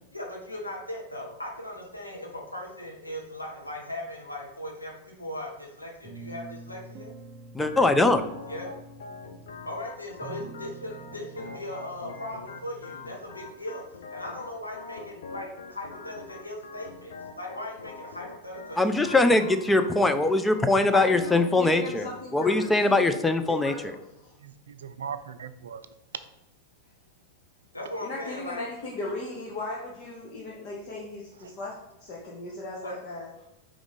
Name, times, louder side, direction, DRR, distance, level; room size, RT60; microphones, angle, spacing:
voice 1, 0.1-7.1 8.5-8.7 9.6-13.8 14.1-19.2 27.7-28.7 32.8-33.0, left 1 dB, 85° left, 1.3 m, -38 dB
sound 1, 6.0-13.1, right 3 dB, 30° right, 0.7 m, -46 dB
voice 2, 7.5-8.2 18.8-23.7, left 2 dB, 10° left, 0.5 m, -22 dB
Organ, 7.6-22.6, left 4 dB, 60° left, 0.6 m, -44 dB
voice 3, 20.9-23.1 23.5-24.4 28.0-33.3, left 2 dB, 45° left, 1.2 m, -37 dB
voice 4, 24.4-26.2 31.3-31.6, right 7 dB, 65° right, 0.4 m, -40 dB
5.0 x 3.7 x 5.2 m
figure-of-eight pair, 90°, 0 cm